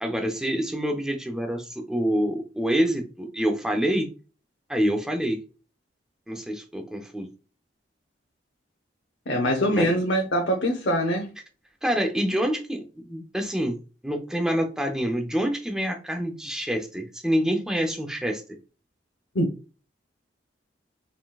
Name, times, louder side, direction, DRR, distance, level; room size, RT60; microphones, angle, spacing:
voice 1, 0.0-4.1 4.7-5.4 6.3-7.3 9.7-9.9 11.8-13.7 14.0-18.4, equal, 5° right, 3 dB, 0.6 m, -26 dB
voice 2, 9.3-11.3 19.3-19.5, equal, 85° left, 1 dB, 0.8 m, -23 dB
3.9 x 3.8 x 2.4 m, 0.35 s
head